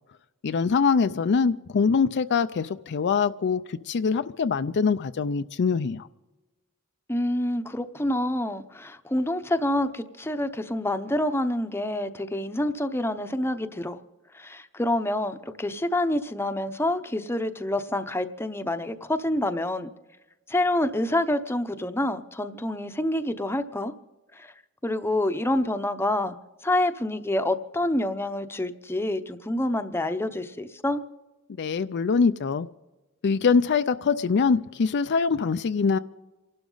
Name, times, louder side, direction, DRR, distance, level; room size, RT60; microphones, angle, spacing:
voice 1, 0.4-6.1 31.6-32.7 33.2-36.0, left 5 dB, 50° left, 10 dB, 0.4 m, -23 dB
voice 2, 7.1-14.0 14.3-19.9 20.5-23.9 24.4-24.5 24.8-26.4 26.6-31.0, left 1 dB, 10° left, 9 dB, 0.8 m, -27 dB
28.0 x 12.0 x 3.9 m, 1.1 s
head